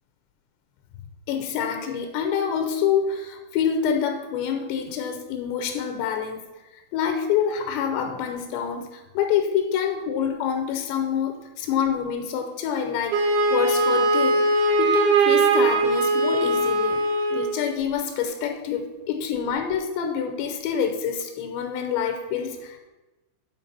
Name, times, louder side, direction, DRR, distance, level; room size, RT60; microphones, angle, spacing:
voice 1, 1.3-6.4 6.7-13.2 13.5-14.4 14.8-17.0 17.3-22.9, left 7 dB, 85° left, 5 dB, 2.8 m, -26 dB
Wind instrument woodwind instrument, 13.1-17.5, right 2 dB, 65° right, 2.6 m, -20 dB
9.0 x 4.0 x 5.6 m, 1.1 s
omnidirectional pair, 5.2 m